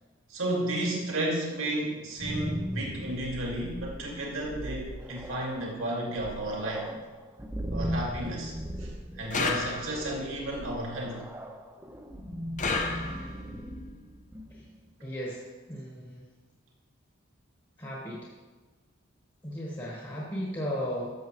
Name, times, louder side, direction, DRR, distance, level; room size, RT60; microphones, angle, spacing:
voice 1, 0.3-6.9 7.7-8.5 8.8-8.9 9.2-11.2, right 1 dB, 80° right, -2 dB, 2.3 m, -32 dB
sound 1, 1.9-14.8, equal, 10° right, 0.6 m, -38 dB
sound 2, 9.3-10.2 12.6-13.5, left 3 dB, 40° left, 0.8 m, -31 dB
voice 2, 15.0-16.2 17.8-18.3 19.4-21.1, equal, 20° left, -5 dB, 1.5 m, -35 dB
13.0 x 7.0 x 3.2 m, 1.3 s
head